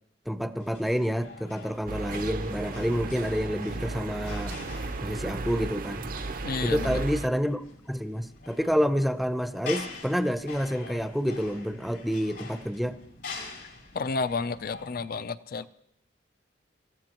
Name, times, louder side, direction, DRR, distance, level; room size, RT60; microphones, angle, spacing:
voice 1, 0.3-4.6 5.0-6.1 6.6-13.0, equal, ahead, 10 dB, 0.6 m, -28 dB
sound 1, 0.6-15.0, left 4 dB, 80° left, 4.3 m, -45 dB
sound 2, 1.9-7.3, right 3 dB, 50° right, 0.7 m, -34 dB
voice 2, 6.4-7.0 13.9-15.7, left 4 dB, 55° left, 14 dB, 0.5 m, -31 dB
26.5 x 15.0 x 3.0 m, 0.69 s
head